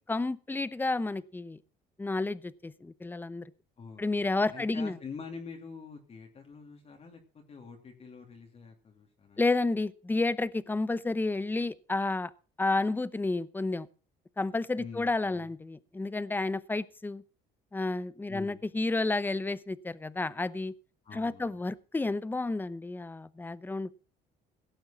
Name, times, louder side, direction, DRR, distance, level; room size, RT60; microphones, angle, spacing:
voice 1, 0.1-1.6 2.0-3.5 4.0-5.0 9.4-12.3 12.6-13.9 14.4-17.2 17.7-20.7 21.1-23.9, left 2 dB, 10° left, 0.7 m, -31 dB
voice 2, 3.8-9.4 14.8-15.5 18.3-18.6 21.0-21.6, left 5 dB, 40° left, 2.8 m, -46 dB
17.0 x 7.8 x 5.7 m
cardioid pair, 110°, 17 cm